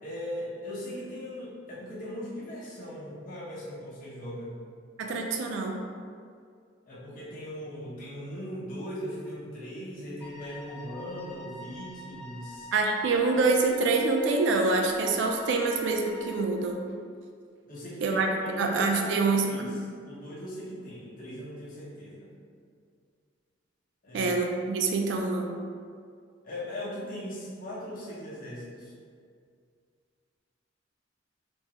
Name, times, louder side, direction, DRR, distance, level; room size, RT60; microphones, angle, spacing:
voice 1, 0.0-4.6 6.9-12.7 17.6-19.8 20.1-22.3 24.0-24.3 26.4-28.9, equal, 45° left, -7 dB, 0.8 m, -39 dB
voice 2, 5.0-5.8 12.7-16.8 18.0-18.3 18.6-19.8 24.1-25.6, right 3 dB, 65° right, 2 dB, 0.3 m, -26 dB
Wind instrument woodwind instrument, 10.2-16.6, left 1 dB, 5° left, 0.4 m, -46 dB
3.5 x 2.0 x 2.8 m, 2.2 s
head